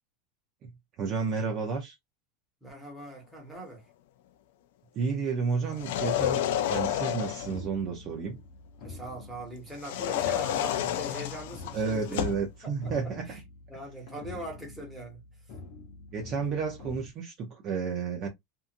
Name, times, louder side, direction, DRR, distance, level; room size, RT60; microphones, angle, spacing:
voice 1, 1.0-1.9 4.9-8.4 11.7-13.3 16.1-18.3, right 5 dB, 30° right, 0.6 m, -31 dB
voice 2, 2.6-3.8 8.8-12.2 12.6-12.9 13.3-13.4 13.7-15.2, right 1 dB, 5° right, 1.1 m, -41 dB
sound 1, 5.7-7.6 9.8-12.5, left 10 dB, 70° left, 0.4 m, -30 dB
sound 2, 6.1-17.1, left 3 dB, 45° left, 0.8 m, -47 dB
2.7 x 2.5 x 2.5 m
supercardioid pair, 170°, 0 cm